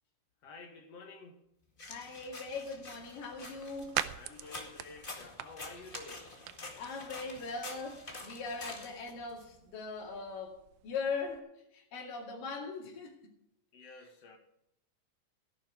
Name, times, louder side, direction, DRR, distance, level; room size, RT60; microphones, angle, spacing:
voice 1, 0.4-1.5 4.1-6.4 13.7-14.4, left 3 dB, 55° left, 2.3 m, -51 dB
sound 1, 1.8-9.4, left 2 dB, 20° left, 1.4 m, -47 dB
voice 2, 1.9-4.0 6.8-13.2, left 4 dB, 80° left, 3.9 m, -40 dB
sound 2, 2.7-11.4, right 14 dB, 80° right, 1.8 m, -45 dB
14.0 x 11.0 x 4.9 m
omnidirectional pair, 3.8 m